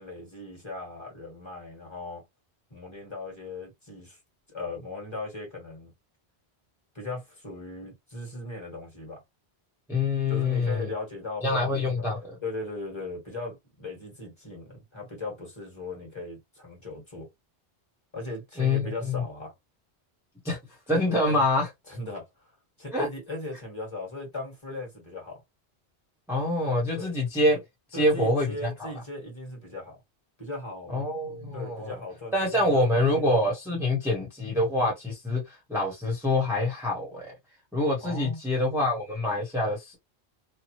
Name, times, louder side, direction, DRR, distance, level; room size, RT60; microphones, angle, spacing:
voice 1, 0.0-2.2 2.7-4.2 4.5-5.9 6.9-9.2 10.3-12.0 12.4-17.3 18.1-19.5 21.3-21.4 21.9-22.3 22.8-25.4 26.9-27.2 27.9-30.0 30.4-31.1 31.5-33.3 38.0-38.4, left 2 dB, 25° left, 1.6 m, -38 dB
voice 2, 9.9-10.9 11.4-12.4 18.6-19.2 20.4-20.6 20.9-21.7 22.9-23.1 26.3-27.6 27.9-28.9 30.9-31.9 32.3-37.3 37.7-40.0, left 2 dB, ahead, 1.0 m, -26 dB
2.9 x 2.3 x 2.9 m
omnidirectional pair, 1.1 m